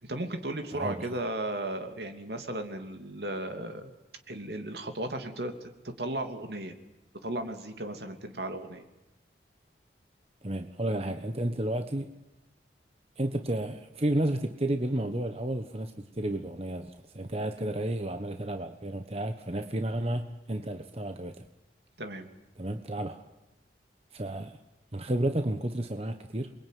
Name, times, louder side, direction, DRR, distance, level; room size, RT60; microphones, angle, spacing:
voice 1, 0.0-3.9 4.3-5.5 6.0-6.8 7.2-8.9 22.0-22.3, right 1 dB, 65° right, 6 dB, 3.0 m, -35 dB
voice 2, 0.7-1.1 10.4-12.1 13.2-21.5 22.6-23.2 24.1-24.5 24.9-26.5, right 1 dB, 35° right, 7 dB, 1.3 m, -32 dB
28.0 x 22.0 x 9.4 m, 1.0 s
head